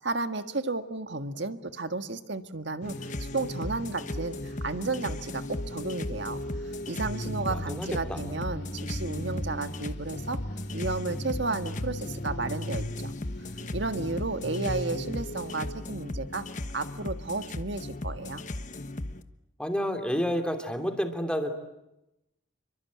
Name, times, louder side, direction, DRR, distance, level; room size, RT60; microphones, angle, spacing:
voice 1, 0.0-6.4 6.9-10.4 10.7-13.1 13.7-16.4 16.7-18.4, right 3 dB, 60° right, 8 dB, 1.7 m, -33 dB
sound 1, 2.8-15.8, equal, 55° left, 2.9 m, -38 dB
sound 2, 2.8-19.2, left 2 dB, 40° left, 1.2 m, -37 dB
voice 2, 7.5-8.2 19.6-21.5, equal, 5° left, 5 dB, 3.0 m, -30 dB
28.5 x 24.0 x 8.6 m, 0.89 s
head